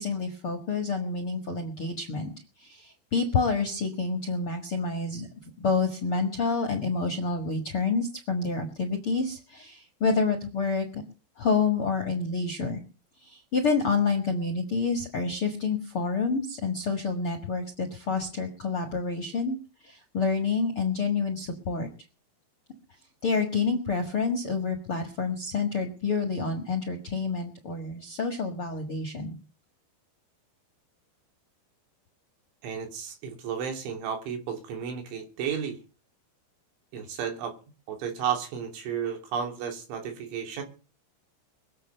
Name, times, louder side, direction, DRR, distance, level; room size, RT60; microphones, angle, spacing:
voice 1, 0.0-2.3 2.6-11.0 11.4-12.8 13.2-19.6 19.8-21.9 23.2-29.4, left 4 dB, 55° left, 4 dB, 1.5 m, -28 dB
voice 2, 32.6-35.8 36.9-37.6 37.9-40.6, right 7 dB, 85° right, 4 dB, 5.4 m, -33 dB
22.5 x 8.0 x 6.8 m, 0.36 s
omnidirectional pair, 5.3 m